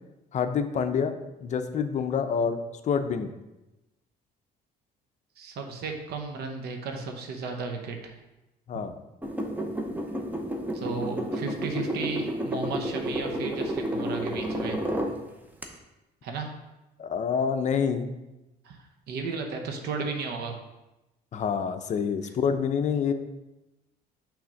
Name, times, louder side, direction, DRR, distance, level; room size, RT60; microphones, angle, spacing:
voice 1, 0.3-2.6 2.8-3.3 8.7-8.9 17.0-18.1 21.3-23.1, left 6 dB, 45° left, 9 dB, 0.5 m, -27 dB
voice 2, 5.4-8.1 10.7-14.8 16.2-16.5 18.6-20.6, right 4 dB, 70° right, 4 dB, 0.8 m, -34 dB
sound 1, 9.2-15.1 15.6-15.7, equal, 10° right, 0.7 m, -31 dB
6.0 x 3.5 x 5.1 m, 0.99 s
cardioid pair, 110°, 17 cm